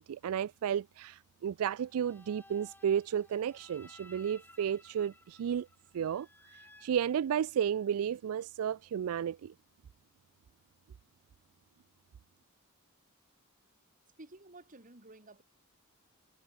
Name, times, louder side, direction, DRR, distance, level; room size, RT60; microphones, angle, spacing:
voice 1, 0.0-5.7 5.9-9.5, right 8 dB, 70° right, 0.3 m, -33 dB
sound 1, 1.8-7.9, left 1 dB, 10° left, 7.6 m, -59 dB
voice 2, 14.2-15.4, right 2 dB, 35° right, 3.2 m, -53 dB
head